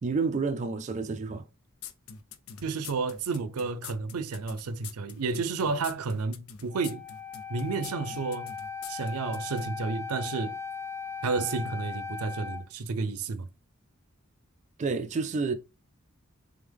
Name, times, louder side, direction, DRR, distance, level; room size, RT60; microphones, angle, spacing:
voice 1, 0.0-1.4 14.8-15.5, right 4 dB, 30° right, 0.3 m, -29 dB
sound 1, 1.8-9.7, left 7 dB, 75° left, 0.5 m, -44 dB
voice 2, 2.6-7.0 7.5-8.5 8.9-10.6 11.2-13.5, right 4 dB, 90° right, 0.5 m, -31 dB
Wind instrument woodwind instrument, 6.7-12.7, left 5 dB, 15° left, 0.7 m, -38 dB
3.5 x 3.4 x 3.4 m
head